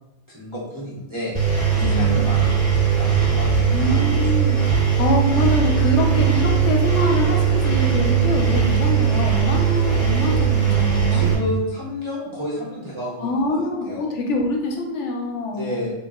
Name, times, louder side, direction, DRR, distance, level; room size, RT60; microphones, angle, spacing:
voice 1, 0.3-4.2 11.1-13.6 13.8-14.1 15.5-15.9, equal, 35° right, -6 dB, 0.5 m, -31 dB
Engine, 1.3-11.3, right 7 dB, 10° right, 0.8 m, -19 dB
voice 2, 1.8-2.2 3.7-4.6 5.0-11.2 13.2-15.7, left 2 dB, 75° left, 0 dB, 0.9 m, -24 dB
3.0 x 2.2 x 3.5 m, 0.93 s
omnidirectional pair, 1.2 m